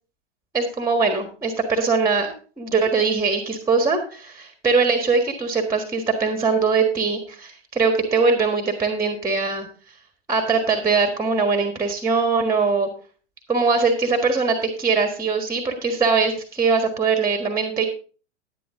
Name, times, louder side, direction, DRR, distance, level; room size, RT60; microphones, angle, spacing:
voice 1, 0.5-9.7 10.3-12.9 13.5-17.9, right 4 dB, 10° right, 6 dB, 1.5 m, -21 dB
10.5 x 10.0 x 3.7 m, 0.38 s
figure-of-eight pair, 100°, 35 cm